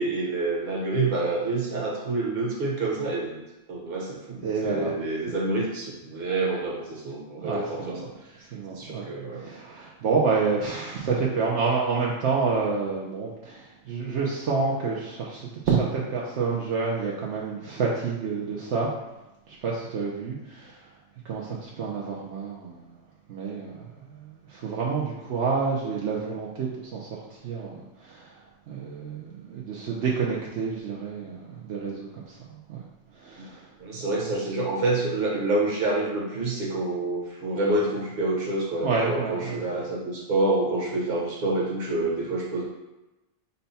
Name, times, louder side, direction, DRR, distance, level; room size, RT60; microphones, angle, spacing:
voice 1, 0.0-3.4 3.7-8.0 8.7-9.4 33.8-42.7, right 2 dB, 40° right, -3 dB, 1.0 m, -27 dB
voice 2, 4.4-4.9 7.4-8.0 8.5-18.9 19.5-20.8 21.2-23.0 23.3-28.3 28.7-32.9 33.2-33.7 34.3-34.4 38.8-39.6, right 4 dB, 65° right, -4 dB, 0.9 m, -29 dB
5.5 x 2.2 x 4.0 m, 1.0 s
omnidirectional pair, 1.3 m